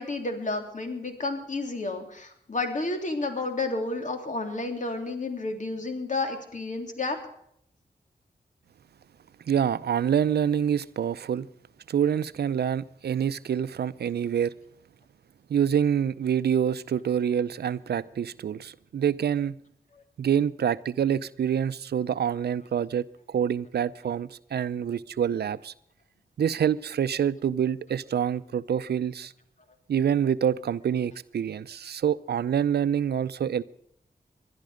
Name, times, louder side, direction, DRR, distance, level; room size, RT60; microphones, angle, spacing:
voice 1, 0.0-7.2, left 3 dB, 50° left, 3.2 m, -31 dB
voice 2, 9.5-11.5 11.9-14.5 15.5-19.6 20.2-25.7 26.4-29.3 29.9-33.6, right 8 dB, 85° right, 0.5 m, -26 dB
21.5 x 12.0 x 5.1 m
cardioid pair, 50°, 17 cm